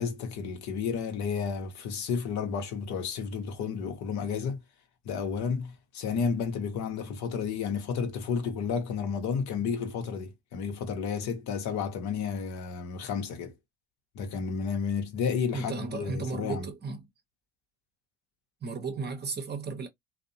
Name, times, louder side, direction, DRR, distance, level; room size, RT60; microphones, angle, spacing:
voice 1, 0.0-4.6 5.0-13.5 14.1-16.7, left 6 dB, 55° left, 0.8 m, -32 dB
voice 2, 15.5-17.0 18.6-19.9, right 4 dB, 30° right, 0.8 m, -34 dB
2.6 x 2.0 x 2.6 m
hypercardioid pair, 70°, 35 cm